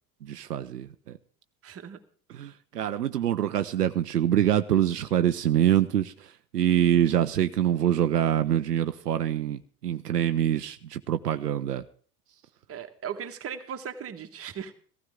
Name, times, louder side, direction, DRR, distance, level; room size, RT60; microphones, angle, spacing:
voice 1, 0.2-1.2 2.3-6.1 6.5-11.8, right 11 dB, 85° right, 10 dB, 0.6 m, -25 dB
voice 2, 1.6-2.0 12.7-14.7, right 8 dB, 30° right, 5 dB, 1.5 m, -37 dB
16.0 x 15.0 x 3.6 m, 0.44 s
figure-of-eight pair, 70°, 46 cm